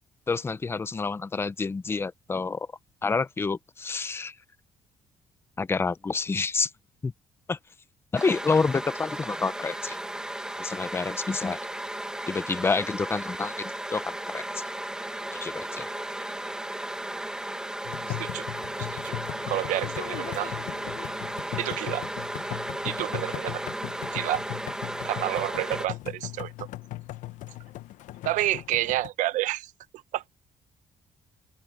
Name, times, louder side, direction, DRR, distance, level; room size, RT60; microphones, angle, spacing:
voice 1, 0.3-2.7 3.0-4.3 5.6-6.7 7.0-7.1 7.5-7.6 8.1-10.0 10.6-11.6 12.3-14.6 15.3-15.9, left 4 dB, 20° left, 0.7 m, -28 dB
sound 1, 8.1-25.9, right 1 dB, 5° right, 1.5 m, -35 dB
sound 2, 17.8-29.1, left 16 dB, 90° left, 0.9 m, -38 dB
voice 2, 18.1-18.5 18.8-19.1 19.5-20.5 21.6-22.0 22.8-23.6 24.1-24.4 25.0-26.7 28.2-29.7 30.1-30.4, right 15 dB, 85° right, 0.7 m, -29 dB
cardioid pair, 145°, 13 cm